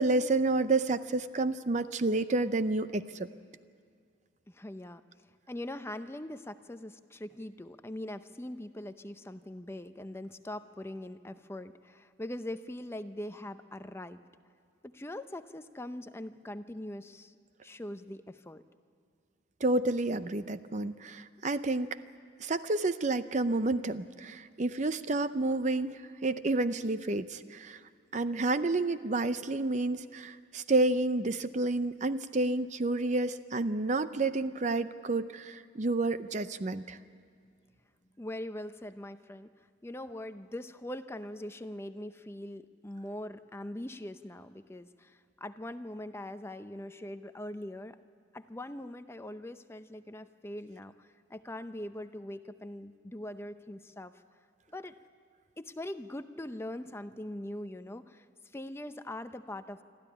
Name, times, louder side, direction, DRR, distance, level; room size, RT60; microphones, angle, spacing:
voice 1, 0.0-3.3 19.6-21.9 22.4-27.8 28.1-37.0, right 2 dB, 40° right, 12 dB, 0.6 m, -30 dB
voice 2, 4.5-5.0 5.5-14.2 14.8-17.4 17.6-18.6 38.2-39.5 39.8-48.0 48.3-54.1 54.7-54.9 55.6-58.3 58.5-59.8, left 1 dB, 15° left, 10 dB, 0.6 m, -42 dB
25.0 x 14.0 x 10.0 m, 2.2 s
head